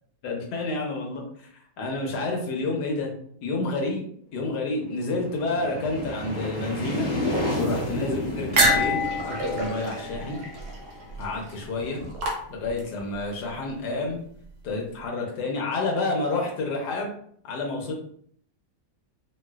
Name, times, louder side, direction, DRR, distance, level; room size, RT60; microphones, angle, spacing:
voice 1, 0.2-1.2 1.8-3.1 3.4-4.1 4.3-9.0 9.2-10.4 11.2-12.0 12.5-14.2 14.6-17.1 17.4-17.9, left 2 dB, 80° left, 0 dB, 1.4 m, -29 dB
sound 1, 4.9-11.6, equal, 50° left, 0.6 m, -32 dB
sound 2, 8.5-13.0, right 2 dB, 85° right, 1.5 m, -29 dB
sound 3, 8.6-10.7 11.1-11.2 12.1-12.3, left 3 dB, 50° right, 0.8 m, -28 dB
4.0 x 2.4 x 2.3 m, 0.62 s
omnidirectional pair, 1.8 m